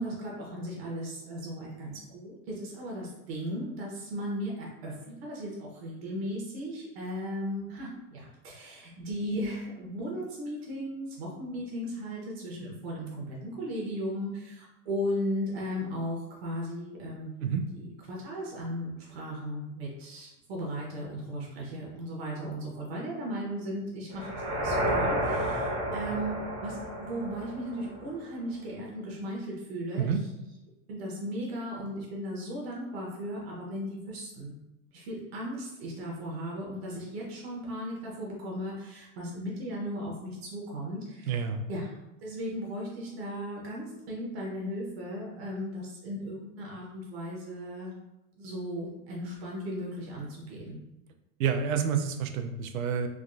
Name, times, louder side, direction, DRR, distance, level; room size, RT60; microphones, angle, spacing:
voice 1, 0.0-30.1 30.9-34.6 34.9-41.4 41.7-41.9 42.2-47.9 48.4-50.7, equal, 50° right, -3 dB, 0.8 m, -36 dB
sound 1, 24.1-28.2, right 1 dB, 20° right, 0.6 m, -31 dB
voice 2, 41.3-41.6 51.4-53.1, right 7 dB, 85° right, 6 dB, 0.6 m, -28 dB
3.4 x 2.4 x 2.5 m, 0.93 s
supercardioid pair, 175°, 40 cm